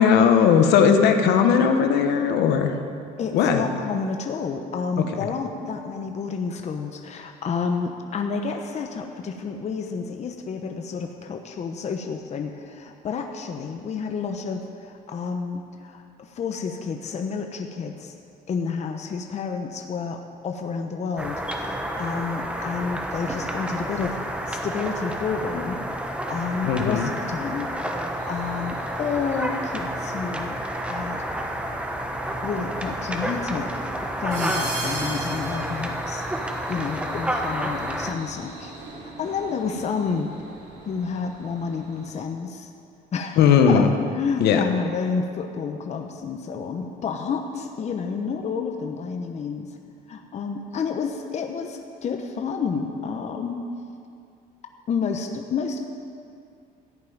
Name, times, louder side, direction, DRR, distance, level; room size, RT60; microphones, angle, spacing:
voice 1, 0.0-2.7 3.3-3.6 26.6-27.1 43.4-43.9 44.4-44.6, left 7 dB, 80° left, 6 dB, 1.2 m, -18 dB
voice 2, 3.2-18.1 18.5-25.8 26.3-31.5 32.4-33.7 34.0-36.4 36.7-38.7 39.0-40.3 40.8-42.7 43.1-43.4 43.7-43.9 44.1-49.7 50.1-53.6 54.9-55.8, left 5 dB, 40° left, 4 dB, 0.9 m, -30 dB
sound 1, 21.2-38.1, right 1 dB, 5° right, 1.1 m, -30 dB
sound 2, 28.2-42.2, right 2 dB, 85° right, 3.6 m, -41 dB
14.0 x 5.6 x 9.4 m, 2.4 s
cardioid pair, 110°, 17 cm